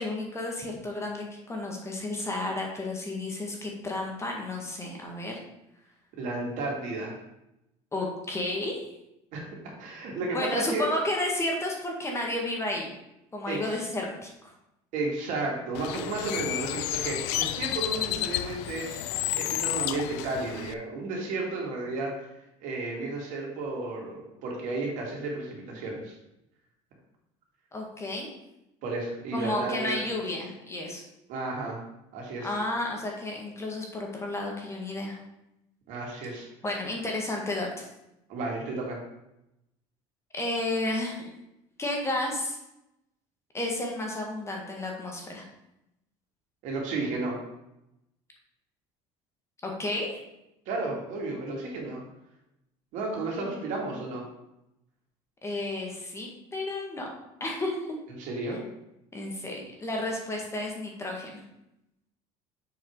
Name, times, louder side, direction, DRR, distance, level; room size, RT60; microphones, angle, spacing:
voice 1, 0.0-5.3 7.9-8.9 10.3-12.9 13.3-14.3 27.7-28.3 29.3-31.0 32.4-35.2 36.6-37.9 40.3-41.2 41.8-42.6 43.5-45.4 49.6-50.2 55.4-57.1 57.4-57.7 59.1-61.4, left 2 dB, 20° left, 0 dB, 1.7 m, -32 dB
voice 2, 6.2-7.2 9.3-10.9 13.5-13.8 14.9-19.0 19.4-22.3 22.6-26.1 28.8-30.0 31.3-31.8 32.1-32.5 35.9-36.5 38.3-39.0 46.6-47.4 50.7-52.0 52.9-54.2 58.2-58.6, right 2 dB, 65° right, -1 dB, 2.5 m, -33 dB
Bird, 15.7-20.7, left 14 dB, 90° left, 0.4 m, -31 dB
6.9 x 4.8 x 4.7 m, 0.86 s
supercardioid pair, 110°, 14 cm